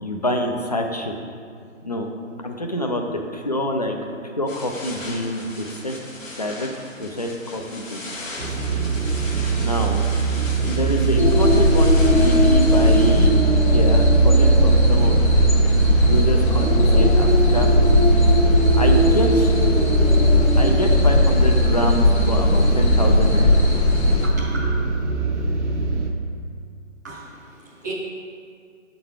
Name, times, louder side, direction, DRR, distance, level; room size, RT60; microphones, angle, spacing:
voice 1, 0.0-1.2 1.8-2.1 2.4-4.0 4.4-6.0 6.4-6.7 7.0-8.0 9.6-10.1 10.6-13.3 13.7-15.2 16.1-17.7 18.8-19.5 20.6-23.6, left 1 dB, 35° left, 2 dB, 0.4 m, -26 dB
sound 1, 4.5-13.3, left 2 dB, 75° left, 1.4 m, -37 dB
sound 2, 8.4-26.1, right 5 dB, 60° right, 0.8 m, -21 dB
sound 3, 11.2-24.3, left 2 dB, 55° left, 1.2 m, -18 dB
voice 2, 24.2-24.8 27.0-27.9, right 2 dB, 15° right, -7 dB, 0.6 m, -35 dB
7.5 x 3.9 x 4.7 m, 2.2 s
figure-of-eight pair, 145°, 39 cm